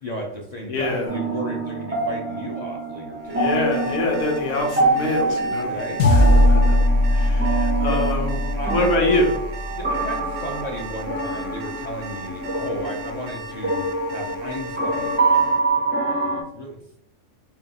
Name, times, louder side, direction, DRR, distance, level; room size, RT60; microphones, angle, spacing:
voice 1, 0.0-3.5 5.6-6.0 7.8-8.2 8.6-9.1 9.7-17.0, equal, 50° left, 0 dB, 0.5 m, -34 dB
voice 2, 0.7-1.1 3.3-5.7 6.1-6.8 7.1-8.4 8.7-9.3, left 2 dB, 65° left, 1 dB, 1.2 m, -24 dB
sound 1, 1.1-16.4, right 3 dB, 15° right, 0.4 m, -26 dB
Alarm, 3.2-15.6, right 6 dB, 65° right, 0.8 m, -41 dB
sound 2, 6.0-10.6, left 1 dB, 85° left, 1.1 m, -20 dB
5.4 x 2.3 x 2.8 m, 0.78 s
omnidirectional pair, 1.4 m